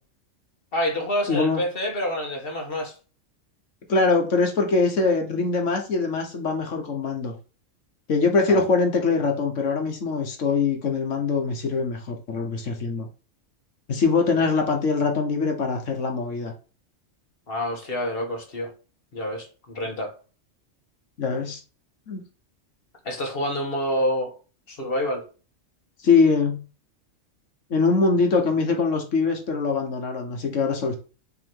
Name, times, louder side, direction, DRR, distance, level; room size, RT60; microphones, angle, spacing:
voice 1, 0.7-2.9 8.5-8.6 17.5-18.7 19.1-20.1 23.1-24.3 24.7-25.2, equal, 50° left, 1.7 m, -27 dB
voice 2, 1.3-1.6 3.9-7.3 8.1-13.1 13.9-16.5 21.2-21.6 22.1-22.2 26.0-26.6 27.7-31.0, left 4 dB, 75° left, 1.5 m, -23 dB
6.8 x 2.9 x 5.2 m
omnidirectional pair, 1.3 m